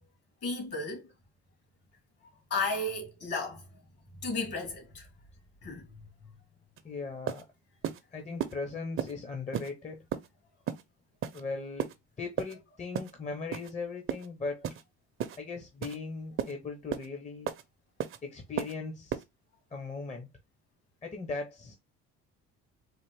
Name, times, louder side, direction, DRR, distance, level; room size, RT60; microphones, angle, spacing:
voice 1, 0.4-1.1 2.5-3.6 4.2-5.1 5.6-5.9, left 3 dB, 55° left, 2.4 m, -33 dB
voice 2, 6.8-7.4 8.1-10.0 11.3-11.9 12.2-14.7 15.4-17.5 18.2-19.2 19.7-20.3 21.0-21.7, left 4 dB, 25° left, 0.9 m, -38 dB
sound 1, 6.8-6.9 7.3-7.4 7.8-8.0 8.4-8.5 9.0-9.1 9.5-9.7 10.1-10.3 10.7-10.8 11.2-11.4 11.8-11.9 12.4-12.5 12.9-13.1 13.5-13.7 14.1-14.3 14.6-14.8 15.2-15.4 15.8-16.0 16.4-16.5 16.9-17.1 17.5-17.6 18.0-18.2 18.6-18.7 19.1-19.2, right 9 dB, 45° right, 0.7 m, -33 dB
4.1 x 2.5 x 3.4 m
supercardioid pair, 95°, 29 cm